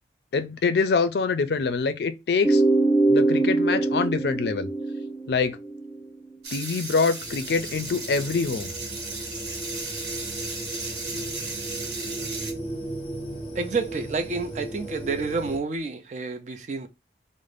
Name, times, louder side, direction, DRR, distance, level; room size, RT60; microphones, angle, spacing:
voice 1, 0.3-2.6 3.1-4.7 5.3-5.6 6.5-8.7, left 4 dB, 65° left, 0.4 m, -25 dB
sound 1, 2.4-6.0, right 2 dB, ahead, 0.7 m, -22 dB
sound 2, 6.4-12.5, right 3 dB, 70° right, 1.0 m, -35 dB
sound 3, 7.2-15.6, right 1 dB, 35° left, 0.8 m, -36 dB
voice 2, 13.6-16.9, right 4 dB, 40° right, 0.3 m, -29 dB
2.5 x 2.0 x 3.2 m
head